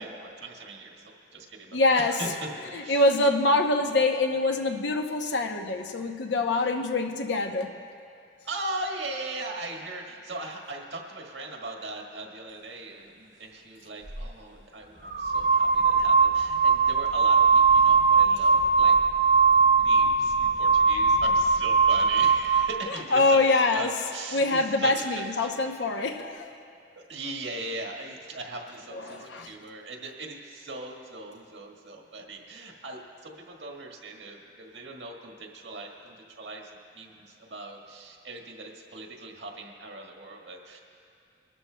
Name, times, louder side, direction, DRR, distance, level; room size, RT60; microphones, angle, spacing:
voice 1, 0.0-2.5 2.8-3.1 8.4-19.0 19.7-23.4 23.7-25.5 26.9-40.8, right 2 dB, 90° right, 1 dB, 1.6 m, -39 dB
voice 2, 1.7-2.2 2.7-7.8 22.9-23.9 24.3-26.6 28.9-29.5, left 2 dB, 85° left, 5 dB, 0.8 m, -25 dB
sound 1, 14.1-14.2 15.0-22.8, right 5 dB, 50° right, 0.9 m, -21 dB
23.5 x 12.5 x 2.2 m, 2.4 s
head